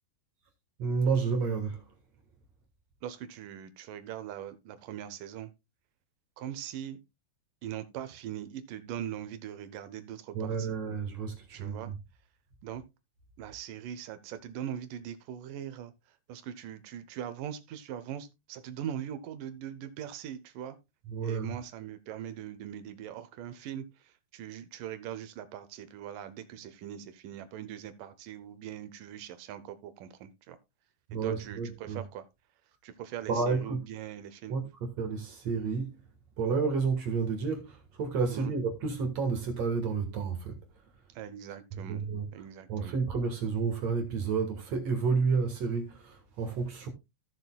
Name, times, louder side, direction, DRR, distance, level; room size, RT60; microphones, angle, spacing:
voice 1, 0.8-1.8 10.3-12.0 21.1-21.5 31.1-32.0 33.3-33.8 34.5-34.6 35.0-36.0 36.4-40.5 41.7-46.9, right 5 dB, 55° right, 2.1 m, -30 dB
voice 2, 3.0-5.5 6.4-7.0 7.6-10.7 11.5-11.9 12.6-12.8 13.4-15.9 16.3-20.8 21.2-23.9 24.3-30.6 31.2-32.3 32.8-34.6 38.3-38.5 41.2-42.0 42.3-43.0, right 10 dB, 75° right, 2.1 m, -41 dB
16.0 x 6.6 x 2.3 m
omnidirectional pair, 4.6 m